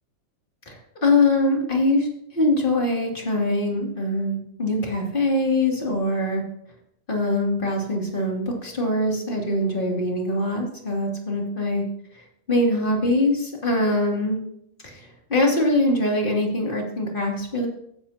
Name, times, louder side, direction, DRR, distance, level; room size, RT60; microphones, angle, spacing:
voice 1, 0.7-2.1 2.3-6.4 7.1-11.8 12.5-14.4 14.8-17.7, left 2 dB, 40° left, -1 dB, 3.0 m, -23 dB
14.5 x 11.5 x 2.9 m, 0.73 s
omnidirectional pair, 1.4 m